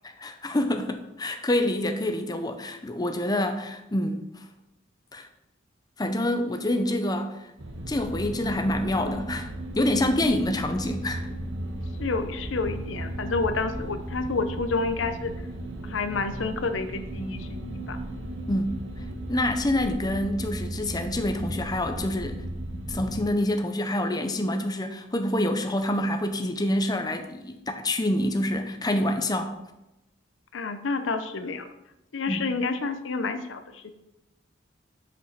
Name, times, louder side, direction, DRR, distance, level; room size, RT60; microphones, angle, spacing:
voice 1, 0.2-4.5 5.1-5.3 6.0-7.5 7.9-11.3 18.5-18.7 19.3-22.4 22.9-29.5 32.3-32.4, left 1 dB, 20° left, 6 dB, 0.6 m, -27 dB
sound 1, 7.6-23.3, right 1 dB, 75° right, 1.1 m, -35 dB
voice 2, 12.0-15.3 15.8-17.6 17.9-18.0 30.5-31.7 32.1-33.9, left 4 dB, 80° left, 9 dB, 0.7 m, -29 dB
6.5 x 5.4 x 5.7 m, 0.91 s
head